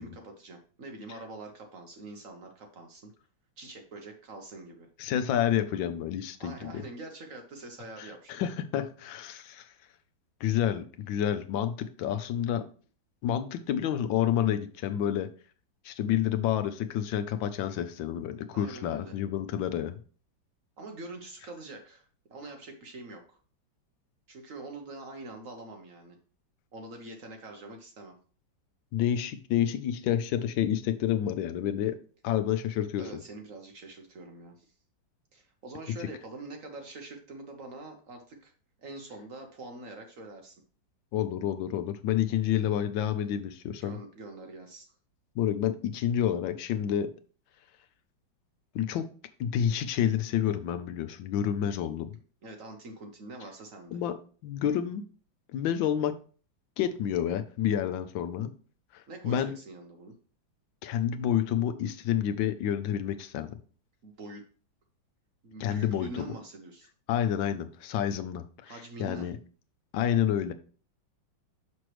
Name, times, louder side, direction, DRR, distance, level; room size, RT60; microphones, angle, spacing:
voice 1, 0.0-3.1 3.6-4.9 6.4-8.4 18.5-19.2 20.8-22.0 22.3-23.4 24.3-26.2 26.7-28.1 33.0-34.7 35.3-38.5 38.8-40.6 42.3-42.6 43.8-44.9 52.4-54.0 59.1-60.2 64.0-64.4 65.4-66.9 68.7-69.3, right 2 dB, 55° right, 4 dB, 1.1 m, -44 dB
voice 2, 5.0-6.8 8.0-9.7 10.4-12.6 13.2-15.3 15.8-20.0 28.9-32.0 32.2-33.0 41.1-44.0 45.4-47.1 48.7-49.1 49.4-52.1 53.9-54.2 54.4-55.0 55.5-56.2 56.8-58.5 58.9-59.5 60.8-63.5 65.6-66.3 67.1-69.4 69.9-70.5, left 10 dB, 80° left, 9 dB, 1.4 m, -29 dB
6.2 x 6.0 x 3.1 m, 0.40 s
omnidirectional pair, 2.1 m